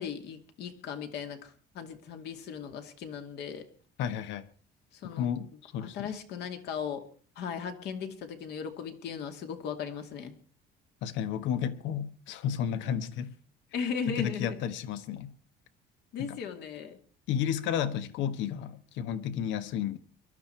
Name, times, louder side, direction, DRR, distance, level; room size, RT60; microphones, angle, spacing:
voice 1, 0.0-3.6 4.9-5.3 5.8-7.0 7.4-10.3 13.7-14.6 16.1-17.0, left 7 dB, 65° left, 2.4 m, -37 dB
voice 2, 4.0-4.4 5.0-6.1 11.0-13.3 14.1-15.3 16.2-16.4 17.3-20.0, left 9 dB, 85° left, 1.4 m, -32 dB
22.5 x 12.5 x 4.5 m
cardioid pair, 175°, 19 cm